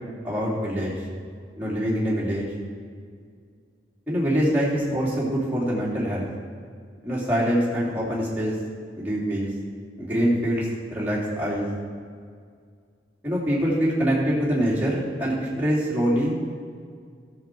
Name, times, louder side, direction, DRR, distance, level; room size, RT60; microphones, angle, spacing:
voice 1, 0.2-0.9 1.6-2.5 4.1-6.3 7.0-8.5 9.0-9.5 10.0-10.7 10.9-11.7 13.2-16.4, equal, 10° right, -7 dB, 2.8 m, -24 dB
14.0 x 7.3 x 4.5 m, 2.1 s
head